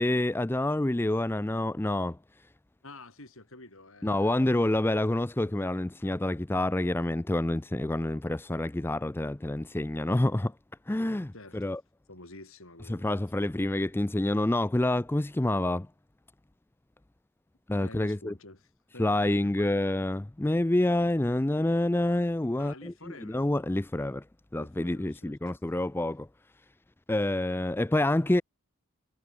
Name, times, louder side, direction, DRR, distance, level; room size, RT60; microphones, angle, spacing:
voice 1, 0.0-2.2 4.0-10.5 10.9-11.8 12.9-15.9 17.7-18.3 19.0-22.9 23.2-24.2 24.5-26.3 27.1-28.4, left 1 dB, 10° left, 0.4 m, -27 dB
voice 2, 2.8-4.6 11.3-11.8 12.1-13.1 17.8-19.9 22.6-23.4 24.5-25.5, left 2 dB, 65° left, 5.8 m, -49 dB
head